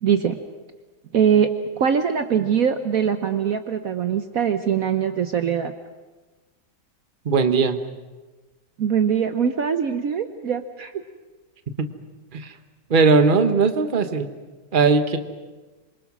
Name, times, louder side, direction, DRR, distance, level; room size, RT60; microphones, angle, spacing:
voice 1, 0.0-0.4 1.1-1.5 1.8-5.7 8.8-11.0, right 7 dB, 60° right, 8 dB, 1.3 m, -22 dB
voice 2, 7.2-7.8 11.8-11.9 12.3-12.5 12.9-14.3 14.7-15.2, right 4 dB, 30° right, 8 dB, 1.3 m, -18 dB
27.0 x 24.0 x 6.1 m, 1.2 s
omnidirectional pair, 1.9 m